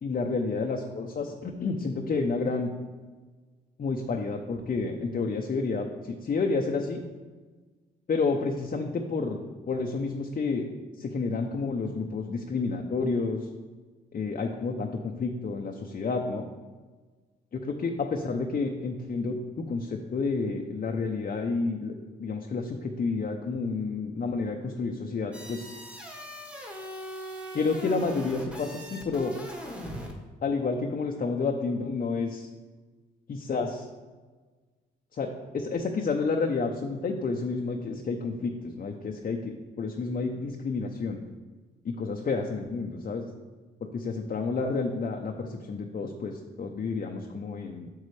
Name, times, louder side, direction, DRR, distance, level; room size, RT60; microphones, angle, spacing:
voice 1, 0.0-2.7 3.8-7.0 8.1-9.4 9.7-10.7 11.0-13.5 14.1-16.5 17.5-21.9 22.2-25.7 27.5-29.3 30.4-32.5 33.3-33.9 35.1-41.2 41.8-43.3 43.8-47.9, left 4 dB, 45° left, 2 dB, 0.8 m, -30 dB
sound 1, 25.3-30.2, equal, 5° right, 1.6 m, -40 dB
8.2 x 6.5 x 3.3 m, 1.4 s
supercardioid pair, 70°, 20 cm